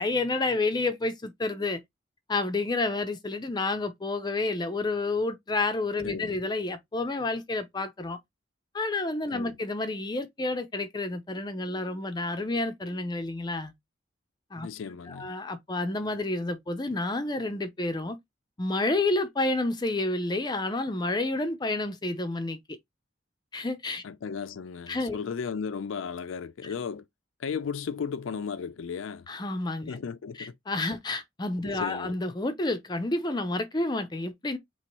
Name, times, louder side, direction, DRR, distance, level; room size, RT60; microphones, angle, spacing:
voice 1, 0.0-1.8 2.3-8.2 8.7-13.7 14.5-14.7 15.1-18.2 18.6-22.6 23.5-24.0 24.9-25.2 29.3-30.0 30.4-34.6, left 2 dB, 20° left, 0.5 m, -29 dB
voice 2, 6.0-6.4 9.3-9.6 14.6-15.3 24.0-27.1 27.4-29.3 29.9-30.5 31.6-32.1, left 6 dB, 85° left, 0.4 m, -35 dB
4.4 x 3.0 x 3.0 m
head